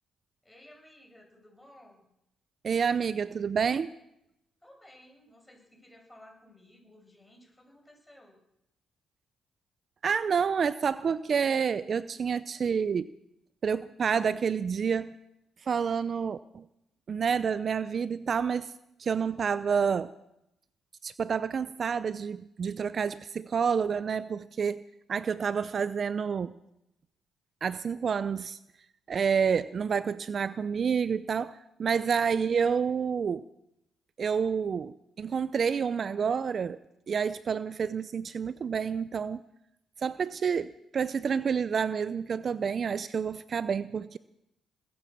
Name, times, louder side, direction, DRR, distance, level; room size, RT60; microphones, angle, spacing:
voice 1, 0.4-2.1 4.6-8.4, left 1 dB, 10° left, 1 dB, 7.5 m, -56 dB
voice 2, 2.6-3.9 10.0-13.1 13.6-15.2 15.6-16.6 17.1-18.7 19.0-20.1 21.0-24.8 25.1-26.6 27.6-28.6 29.1-33.5 34.2-36.8 37.1-39.4 40.0-44.2, right 6 dB, 55° right, 15 dB, 0.5 m, -29 dB
21.0 x 9.3 x 7.2 m, 0.82 s
supercardioid pair, 60°, 0 cm